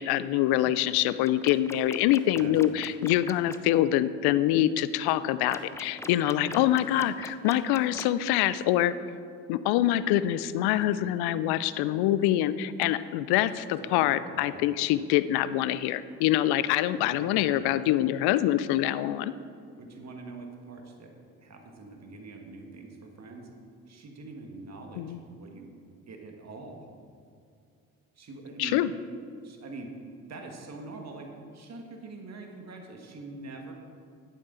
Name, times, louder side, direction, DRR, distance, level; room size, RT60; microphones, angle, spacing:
voice 1, 0.0-8.9 9.5-19.3 25.0-25.2 28.6-28.9, left 13 dB, 65° left, 15 dB, 0.6 m, -25 dB
sound 1, 1.3-3.6 5.5-8.2, left 2 dB, 5° left, 0.4 m, -42 dB
voice 2, 13.8-14.6 16.9-17.7 19.8-21.1 21.4-23.5 23.9-25.7 26.1-26.9 28.2-28.8 29.4-29.9 30.3-33.7, right 3 dB, 40° right, 2 dB, 1.7 m, -44 dB
11.5 x 8.7 x 3.9 m, 2.3 s
hypercardioid pair, 55°, 41 cm